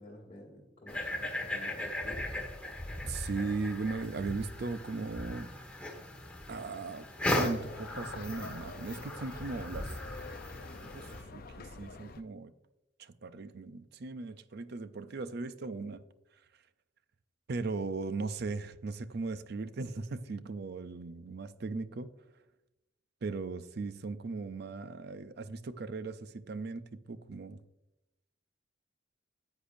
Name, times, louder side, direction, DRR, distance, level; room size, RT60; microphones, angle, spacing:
voice 1, 0.0-2.5, left 1 dB, 30° left, 1.5 m, -50 dB
sound 1, 0.9-11.2, left 1 dB, 5° left, 1.3 m, -38 dB
voice 2, 3.0-5.5 6.5-9.9 10.9-11.1 11.3-12.5 13.0-16.0 17.5-22.1 23.2-27.6, right 3 dB, 55° right, 0.5 m, -38 dB
sound 2, 7.2-12.2, left 3 dB, 50° left, 0.5 m, -47 dB
10.0 x 8.3 x 2.6 m
head